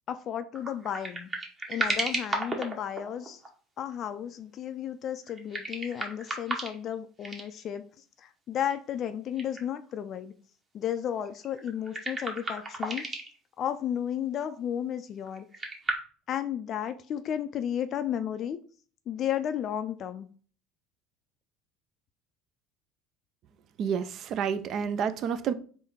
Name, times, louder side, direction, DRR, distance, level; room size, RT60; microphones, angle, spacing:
voice 1, 0.1-1.3 1.7-3.4 3.8-7.8 8.2-10.3 10.7-13.0 13.6-15.5 16.3-18.6 19.1-20.3, left 9 dB, 50° left, 0.3 m, -33 dB
sound 1, 0.6-3.5 5.3-6.9 7.2-7.5 8.7-8.8 9.4-9.6 9.9-10.0 11.3-13.4 15.3-15.9, right 2 dB, 25° right, 1.2 m, -33 dB
voice 2, 23.8-25.5, right 7 dB, 50° right, 0.4 m, -29 dB
3.6 x 2.6 x 4.4 m
hypercardioid pair, 80°, 0 cm